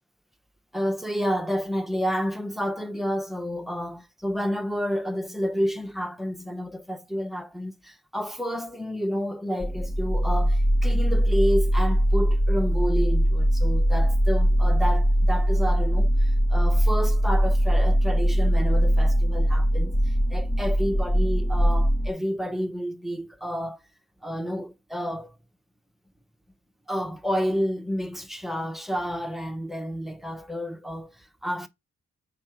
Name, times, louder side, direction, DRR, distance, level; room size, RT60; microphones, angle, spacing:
voice 1, 0.7-23.8 24.2-25.3 26.9-31.7, equal, ahead, 0.9 m, -30 dB
sound 1, 9.6-22.1, equal, 35° left, 1.5 m, -21 dB
4.8 x 4.4 x 5.9 m
cardioid pair, 50°, 29 cm